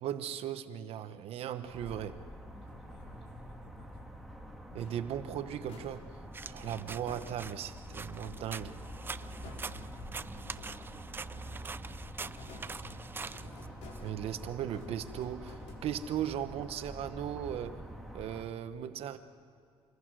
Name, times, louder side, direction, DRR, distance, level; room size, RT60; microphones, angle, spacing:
voice 1, 0.0-2.2 4.7-6.1 6.5-8.8 14.0-17.8 18.1-19.2, right 10 dB, 70° right, 10 dB, 1.0 m, -37 dB
sound 1, 1.6-18.4, equal, ahead, 1.9 m, -47 dB
voice 2, 2.5-4.3 9.3-13.8 17.7-17.9, left 1 dB, 60° left, 2 dB, 6.2 m, -54 dB
sound 2, 4.7-7.7 8.2-11.0 11.4-16.3, left 2 dB, 85° left, 4.2 m, -54 dB
sound 3, 6.3-14.0, right 4 dB, 20° right, 0.5 m, -45 dB
27.5 x 21.5 x 6.3 m, 2.4 s
cardioid pair, 135°, 10 cm